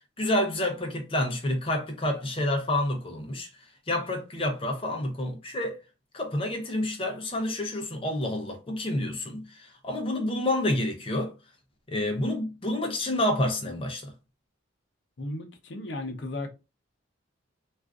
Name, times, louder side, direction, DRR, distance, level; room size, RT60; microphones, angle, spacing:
voice 1, 0.2-3.5 3.9-5.8 6.1-11.3 11.9-14.1, left 1 dB, 30° left, 0.5 m, -28 dB
voice 2, 15.2-16.5, left 2 dB, 65° left, 0.6 m, -35 dB
3.5 x 2.4 x 2.4 m
head